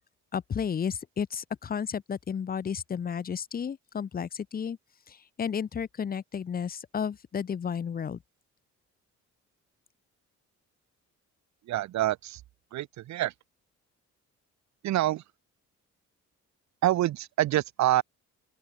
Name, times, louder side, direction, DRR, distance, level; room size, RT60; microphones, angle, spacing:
voice 1, 0.3-4.8 5.1-8.2, left 7 dB, 30° left, 0.6 m, -32 dB
voice 2, 11.7-12.4 12.7-13.3 14.8-15.2 16.8-18.0, right 14 dB, 65° right, 0.7 m, -26 dB
open air
cardioid pair, 90°, 30 cm